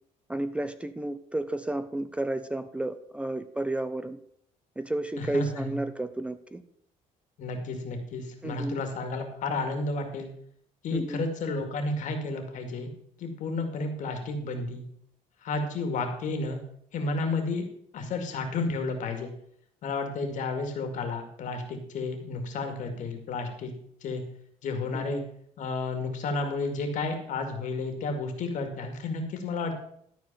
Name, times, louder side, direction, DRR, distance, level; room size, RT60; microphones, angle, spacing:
voice 1, 0.3-4.2 4.8-6.6 8.4-8.8 10.9-11.2 24.9-25.2, right 1 dB, 10° right, 12 dB, 0.5 m, -32 dB
voice 2, 5.2-5.8 7.4-10.3 10.8-12.9 13.2-14.8 15.4-16.6 16.9-17.6 17.9-19.3 19.8-23.7 24.0-24.2 24.6-25.2 25.6-29.7, left 3 dB, 65° left, 5 dB, 2.2 m, -31 dB
13.0 x 4.5 x 6.8 m, 0.69 s
cardioid pair, 115°, 14 cm